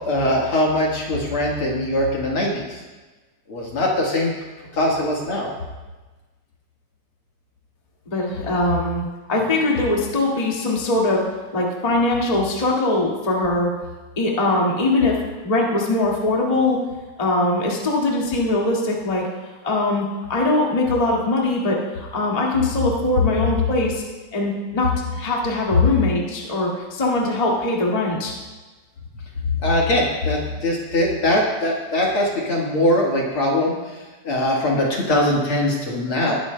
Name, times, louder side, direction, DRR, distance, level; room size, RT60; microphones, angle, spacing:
voice 1, 0.0-2.8 3.5-4.3 4.7-5.5 29.6-36.4, left 1 dB, 50° left, -2 dB, 2.1 m, -21 dB
voice 2, 8.1-11.2 11.5-13.7 14.2-15.2 15.4-16.8 17.2-19.3 19.6-24.0 24.3-28.3, left 2 dB, 15° left, -3 dB, 1.4 m, -21 dB
19.5 x 11.0 x 2.2 m, 1.2 s
omnidirectional pair, 3.3 m